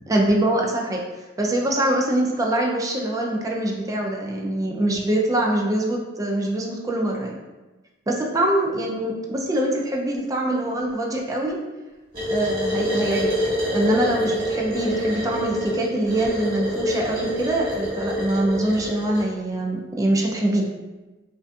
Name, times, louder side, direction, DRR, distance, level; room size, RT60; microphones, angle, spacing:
voice 1, 0.1-1.0 1.4-7.4 8.1-11.6 12.3-13.3 13.7-20.6, right 1 dB, 20° right, -1 dB, 0.3 m, -24 dB
sound 1, 12.1-19.3, equal, 50° right, 1.4 m, -26 dB
2.5 x 2.3 x 2.4 m, 1.2 s
head